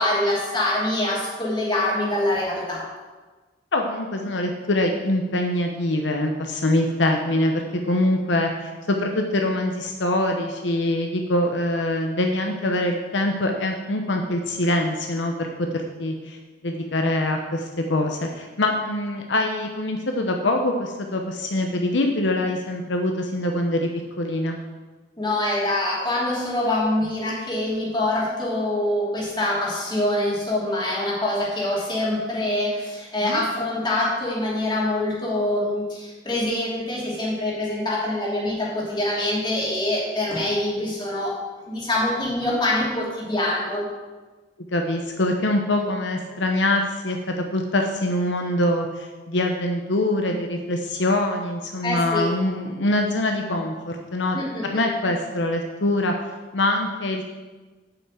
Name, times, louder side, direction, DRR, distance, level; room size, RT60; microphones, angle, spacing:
voice 1, 0.0-2.8 25.2-41.3 41.6-43.8 51.8-52.3 54.3-54.8, left 1 dB, 25° left, -5 dB, 2.9 m, -25 dB
voice 2, 3.7-16.4 16.6-23.9 24.2-24.6 33.2-33.4 44.7-54.4 54.6-56.1 56.5-57.3, left 1 dB, 75° left, 3 dB, 0.8 m, -24 dB
8.4 x 5.6 x 7.7 m, 1.3 s
head